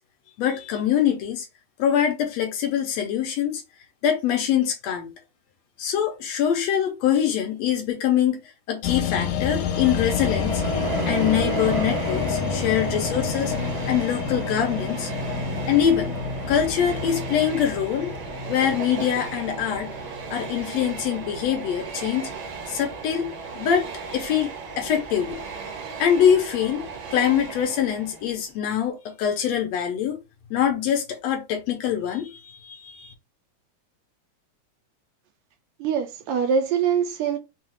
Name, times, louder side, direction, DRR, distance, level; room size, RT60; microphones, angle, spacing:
voice 1, 0.4-1.5 1.8-3.6 4.0-5.1 5.8-8.4 8.7-10.6 11.1-13.5 13.9-15.1 15.7-16.1 16.5-18.1 18.5-19.9 20.3-22.3 22.7-25.4 26.0-30.2 30.5-33.1, left 9 dB, 70° left, 1.9 m, -24 dB
sound 1, 8.8-21.8 22.2-22.3, left 7 dB, 90° left, 2.0 m, -30 dB
Train, 9.4-28.4, right 4 dB, 60° right, 1.3 m, -34 dB
voice 2, 35.8-37.4, right 7 dB, 80° right, 1.7 m, -23 dB
5.5 x 2.4 x 3.1 m
omnidirectional pair, 3.4 m